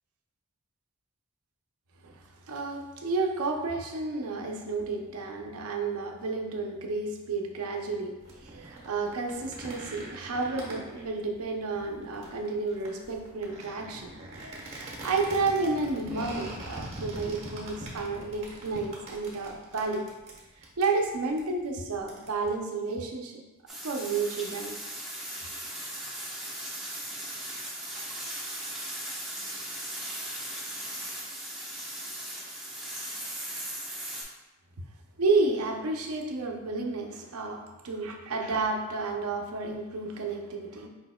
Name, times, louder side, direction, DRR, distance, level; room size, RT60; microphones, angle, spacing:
voice 1, 2.5-20.0 20.8-23.4 23.8-24.8 35.2-40.9, right 3 dB, 85° right, 2 dB, 0.6 m, -31 dB
sound 1, 8.2-22.5, right 1 dB, 30° right, 1.0 m, -43 dB
sound 2, 23.7-34.2, right 1 dB, 5° right, 0.7 m, -38 dB
5.0 x 4.2 x 2.2 m, 1.1 s
head